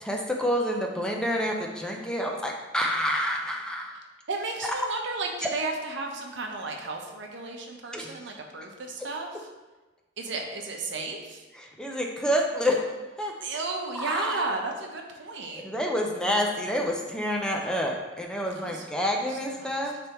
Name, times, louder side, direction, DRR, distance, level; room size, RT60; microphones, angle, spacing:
voice 1, 0.0-3.9 5.4-5.5 7.9-8.1 11.6-12.8 13.2-13.3 14.0-14.4 15.6-20.0, equal, 5° left, 0 dB, 0.5 m, -28 dB
voice 2, 4.3-9.5 10.2-11.5 13.4-15.6 18.6-18.8 19.3-19.8, right 3 dB, 65° right, 2 dB, 0.8 m, -33 dB
9.8 x 3.4 x 3.0 m, 1.2 s
head